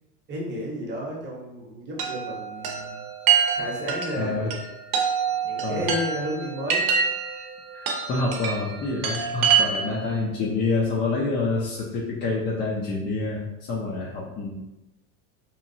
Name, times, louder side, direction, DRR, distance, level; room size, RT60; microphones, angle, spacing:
voice 1, 0.3-3.0 3.5-4.5 5.4-6.9, equal, 25° right, -2 dB, 0.8 m, -32 dB
Chime, 2.0-10.1, right 7 dB, 70° right, 0.7 m, -26 dB
voice 2, 4.2-4.5 5.6-5.9 7.7-14.6, left 3 dB, 25° left, -4 dB, 0.4 m, -27 dB
2.9 x 2.2 x 2.6 m, 0.94 s
supercardioid pair, 115°, 43 cm